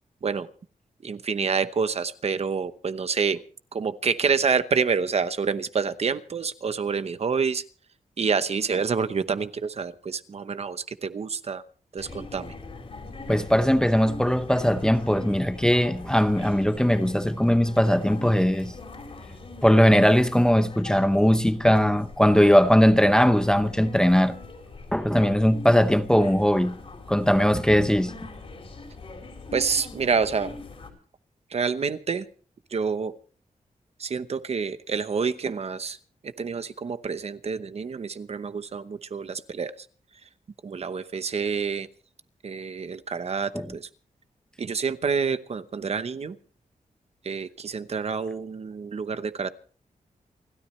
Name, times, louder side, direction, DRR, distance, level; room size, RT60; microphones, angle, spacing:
voice 1, 1.0-3.4 3.7-7.6 8.2-11.6 11.9-12.5 29.5-30.5 31.5-32.3 32.7-33.1 34.0-36.0 36.2-39.7 40.6-41.9 42.4-43.9 44.6-46.4 47.2-49.5, right 5 dB, 45° right, 0.8 m, -27 dB
sound 1, 12.0-30.9, left 3 dB, 45° left, 4.1 m, -42 dB
voice 2, 13.3-18.7 19.6-24.3 24.9-26.8 27.1-28.1 43.5-43.7, equal, 5° left, 0.7 m, -20 dB
28.5 x 13.0 x 3.2 m
wide cardioid pair, 175°, 14 cm